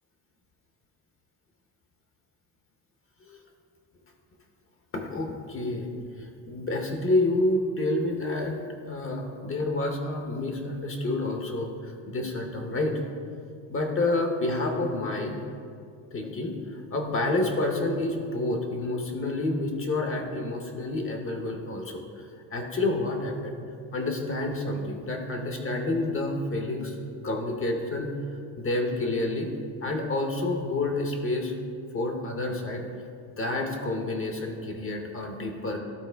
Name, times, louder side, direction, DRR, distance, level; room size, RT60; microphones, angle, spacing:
voice 1, 4.9-5.9 6.2-8.6 8.9-13.0 13.7-15.4 16.1-23.6 23.9-27.0 27.2-28.1 28.6-29.5 29.8-31.5 31.9-33.1 33.4-35.8, left 2 dB, 30° left, 3 dB, 0.8 m, -29 dB
12.5 x 4.2 x 3.4 m, 2.4 s
cardioid pair, 125°, 46 cm